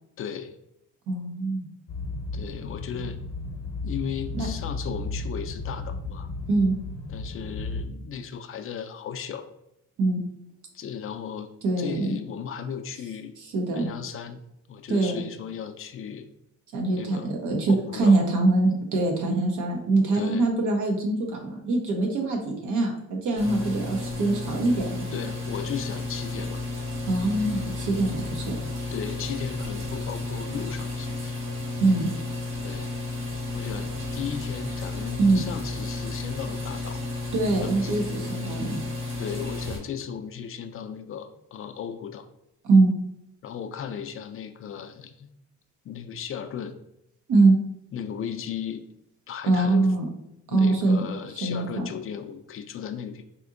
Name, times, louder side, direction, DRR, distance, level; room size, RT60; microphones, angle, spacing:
voice 1, 0.2-0.5 2.3-3.2 3.8-6.3 7.1-9.5 10.7-11.5 11.8-13.3 13.7-14.4 14.7-16.3 17.0-17.3 17.7-18.2 20.1-20.5 25.1-26.6 28.9-31.4 32.6-32.9 33.5-37.2 37.6-38.1 39.2-42.3 43.4-45.3 45.8-46.8 47.9-48.9 49.3-49.9 50.5-53.2, left 8 dB, 45° left, 7 dB, 0.4 m, -36 dB
voice 2, 1.1-1.7 4.3-4.5 6.5-6.8 10.0-10.2 11.6-12.2 13.5-13.9 14.9-15.2 16.7-25.1 27.1-28.6 31.8-32.1 35.2-35.4 37.3-38.8 42.6-42.9 47.3-47.6 49.5-50.1 50.5-51.0 51.4-51.9, right 2 dB, 80° right, 1 dB, 1.0 m, -23 dB
sound 1, 1.9-7.8, left 3 dB, 60° left, 0.8 m, -34 dB
sound 2, 23.4-39.8, left 2 dB, 40° right, 1.3 m, -32 dB
4.3 x 2.7 x 2.5 m, 0.83 s
cardioid pair, 90°, 30 cm